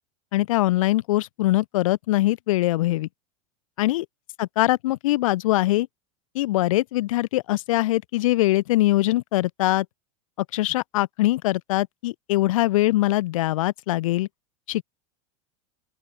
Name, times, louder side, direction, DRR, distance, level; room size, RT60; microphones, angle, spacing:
voice 1, 0.3-3.1 3.8-4.0 4.4-5.9 6.3-9.9 10.5-14.3 14.7-14.8, left 17 dB, 75° left, 1.1 m, -22 dB
open air
hypercardioid pair, 105°, 17 cm